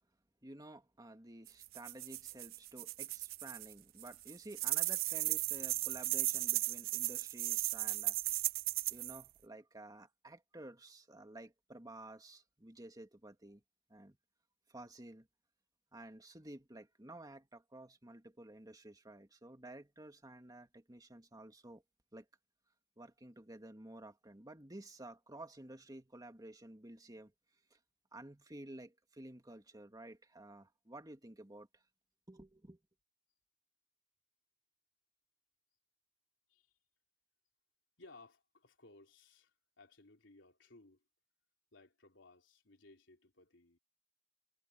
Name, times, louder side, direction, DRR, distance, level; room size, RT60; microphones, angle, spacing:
voice 1, 0.4-8.2 8.9-13.6 13.9-14.2 14.7-15.3 15.9-21.8 22.1-22.3 23.0-27.3 27.7-27.8 28.1-31.7 32.3-32.8, right 1 dB, 20° right, 2.2 m, -52 dB
sound 1, 1.5-3.7 4.0-9.2, right 18 dB, 50° right, 0.3 m, -36 dB
voice 2, 38.0-41.0 41.7-43.8, left 2 dB, 80° left, 3.4 m, -61 dB
head